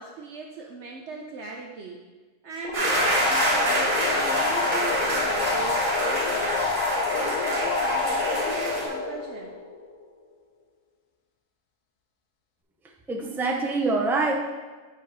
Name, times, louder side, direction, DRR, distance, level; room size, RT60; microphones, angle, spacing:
voice 1, 0.0-2.0 2.4-6.5 7.1-9.6, right 4 dB, 65° right, 1 dB, 0.9 m, -38 dB
sound 1, 2.6-10.0, left 4 dB, 75° left, 1.2 m, -27 dB
sound 2, 2.7-8.8, right 1 dB, 80° right, 2.1 m, -27 dB
voice 2, 13.1-14.3, right 3 dB, 5° right, 0 dB, 0.4 m, -25 dB
8.2 x 4.6 x 4.0 m, 1.3 s
omnidirectional pair, 1.4 m